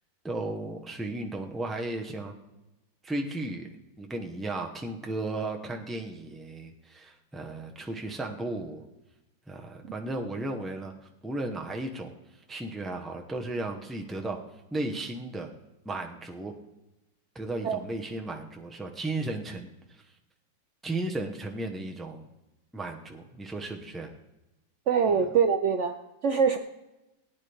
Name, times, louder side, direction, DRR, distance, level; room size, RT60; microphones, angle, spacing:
voice 1, 0.2-2.3 3.0-3.7 4.0-8.8 9.5-10.9 11.2-14.4 14.7-15.5 15.8-16.5 17.3-20.0 20.8-22.3 22.7-24.1 25.1-25.2, right 2 dB, ahead, 2 dB, 0.6 m, -35 dB
voice 2, 24.9-25.9 26.2-26.6, right 6 dB, 90° right, 6 dB, 0.6 m, -23 dB
18.5 x 9.5 x 3.5 m, 0.98 s
omnidirectional pair, 2.0 m